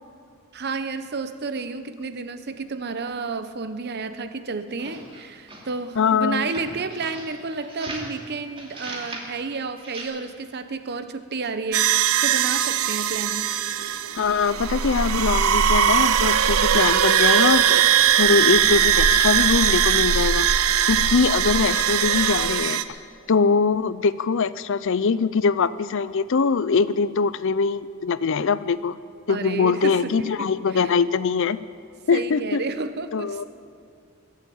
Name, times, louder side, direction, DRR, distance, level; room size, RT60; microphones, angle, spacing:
voice 1, 0.5-13.5 29.3-31.0 32.1-33.4, right 4 dB, 50° right, 10 dB, 0.8 m, -31 dB
sound 1, 4.7-5.8 6.4-8.2 8.6-9.3 9.8-10.0, right 2 dB, 25° right, 2.6 m, -38 dB
voice 2, 6.0-6.5 14.2-17.8 18.2-20.5 20.9-22.8 23.3-29.0 29.3-31.6 32.1-32.6 33.1-33.4, left 5 dB, 65° left, 16 dB, 0.5 m, -22 dB
sound 2, 11.7-22.8, right 9 dB, 80° right, 0.7 m, -20 dB
22.0 x 7.5 x 8.6 m, 2.4 s
head